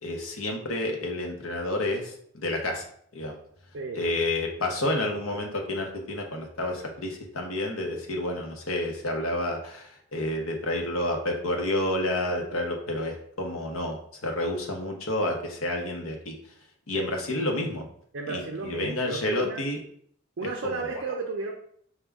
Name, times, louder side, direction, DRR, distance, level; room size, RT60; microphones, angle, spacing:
voice 1, 0.0-2.8 3.1-3.4 3.9-16.3 16.9-17.9 18.3-19.8 20.6-21.0, left 1 dB, 80° left, 2 dB, 0.8 m, -30 dB
voice 2, 18.1-19.6 20.4-21.5, right 4 dB, 60° right, 1 dB, 0.4 m, -33 dB
4.9 x 2.2 x 3.5 m, 0.64 s
head